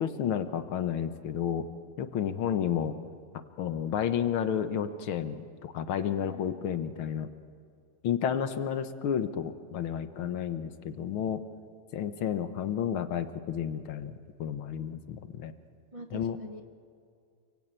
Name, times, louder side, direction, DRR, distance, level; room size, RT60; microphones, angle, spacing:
voice 1, 0.0-1.7 2.0-3.0 3.3-7.3 8.0-11.4 11.9-15.5 16.1-16.4, left 8 dB, 75° left, 10 dB, 2.0 m, -31 dB
voice 2, 5.9-6.6 15.9-16.6, right 1 dB, 45° right, 5 dB, 0.4 m, -44 dB
28.5 x 23.5 x 9.0 m, 2.3 s
omnidirectional pair, 2.4 m